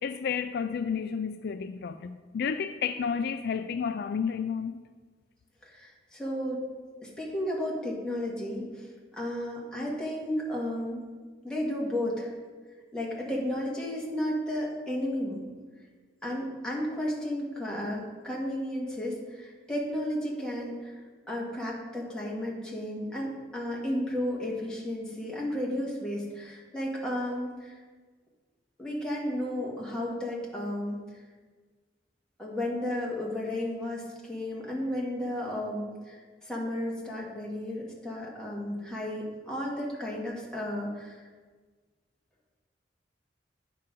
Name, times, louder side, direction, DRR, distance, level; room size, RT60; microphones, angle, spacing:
voice 1, 0.0-4.8, left 6 dB, 60° left, 0.3 m, -31 dB
voice 2, 5.6-6.7 7.0-8.9 9.1-11.0 11.4-12.3 12.9-15.4 16.2-21.0 21.3-27.8 28.8-31.0 32.4-41.2, left 1 dB, 5° left, 1.9 m, -33 dB
9.9 x 5.7 x 5.2 m
head